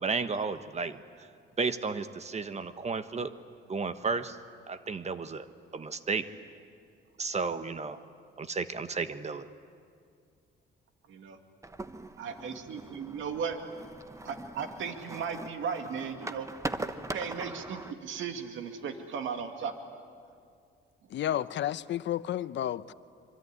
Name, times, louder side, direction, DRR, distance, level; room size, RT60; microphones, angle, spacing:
voice 1, 0.0-1.0 1.6-3.3 3.7-4.4 4.7-5.5 5.7-6.3 7.2-8.0 8.4-9.4, right 4 dB, 35° right, 11 dB, 1.3 m, -33 dB
sound 1, 11.6-17.9, right 2 dB, 15° right, 1.2 m, -41 dB
voice 2, 12.2-13.6 14.2-16.5 17.1-19.7, right 6 dB, 75° right, 6 dB, 2.3 m, -36 dB
voice 3, 21.1-22.9, left 11 dB, 65° left, 15 dB, 0.8 m, -31 dB
25.5 x 24.5 x 9.7 m, 2.3 s
cardioid pair, 90°, 20 cm